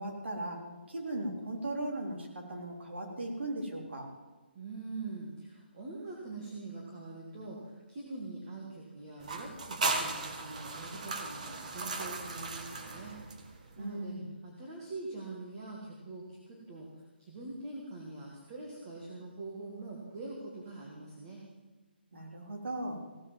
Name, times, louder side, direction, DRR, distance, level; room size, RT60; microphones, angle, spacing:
voice 1, 0.0-4.1 13.8-14.3 22.1-23.0, right 1 dB, 85° right, 1 dB, 4.0 m, -38 dB
voice 2, 4.5-13.1 13.8-14.1 14.4-16.9 17.2-21.4, right 2 dB, 20° right, -2 dB, 2.1 m, -44 dB
sound 1, 9.2-13.8, right 3 dB, 40° right, 1.6 m, -37 dB
16.5 x 8.1 x 7.5 m, 1.2 s
hypercardioid pair, 175°, 6 cm